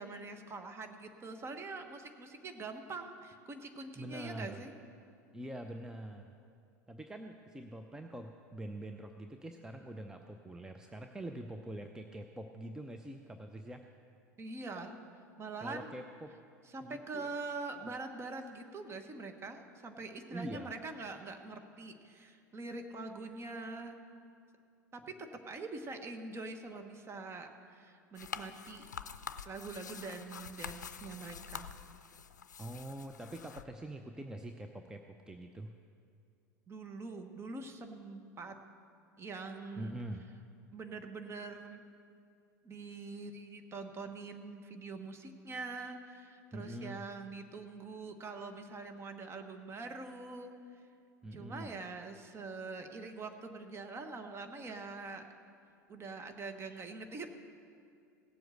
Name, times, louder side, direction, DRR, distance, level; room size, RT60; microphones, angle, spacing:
voice 1, 0.0-4.7 14.4-15.0 15.4-16.0 16.7-24.0 24.9-28.9 29.4-31.7 36.7-38.5 39.2-39.9 40.7-41.8 42.6-50.5 51.3-55.2 55.9-57.3, right 3 dB, 25° right, 6 dB, 1.2 m, -44 dB
voice 2, 4.0-4.6 5.3-6.3 6.9-13.8 15.6-16.3 16.8-17.3 17.8-17.9 20.3-20.7 32.6-35.7 39.8-40.3 46.5-47.0 51.2-51.7, right 1 dB, 5° right, 5 dB, 0.6 m, -44 dB
sound 1, 28.2-33.6, left 7 dB, 80° left, 0.4 m, -46 dB
17.0 x 7.8 x 6.6 m, 2.4 s
figure-of-eight pair, 80°, 9 cm